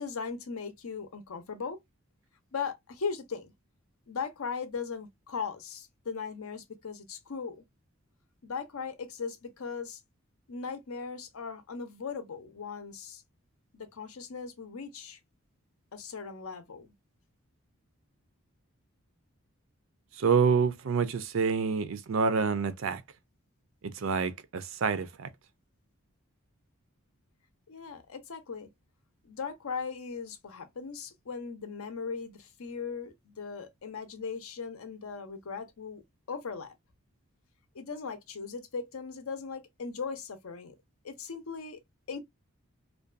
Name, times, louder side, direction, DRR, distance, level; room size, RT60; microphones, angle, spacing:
voice 1, 0.0-1.8 2.5-3.5 4.1-7.6 8.4-10.0 10.5-13.2 13.7-15.2 15.9-16.9 27.7-28.7 29.2-36.0 36.3-36.7 37.7-40.7 41.0-41.8 42.1-42.2, left 5 dB, 80° left, 0.6 m, -38 dB
voice 2, 20.2-23.0 24.0-25.3, right 5 dB, 65° right, 0.4 m, -27 dB
2.5 x 2.2 x 2.4 m
head